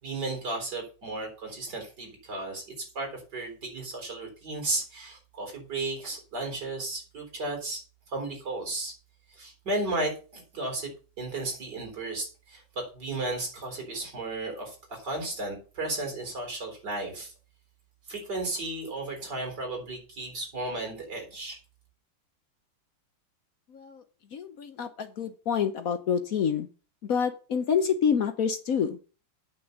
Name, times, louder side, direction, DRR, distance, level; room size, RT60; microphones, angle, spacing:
voice 1, 0.0-7.8 8.1-8.9 9.3-17.3 18.1-21.6, right 2 dB, 55° right, 3 dB, 4.6 m, -34 dB
voice 2, 23.7-24.0 24.3-26.7 27.0-29.0, left 7 dB, 55° left, 10 dB, 1.0 m, -27 dB
9.1 x 7.0 x 6.6 m, 0.36 s
omnidirectional pair, 2.2 m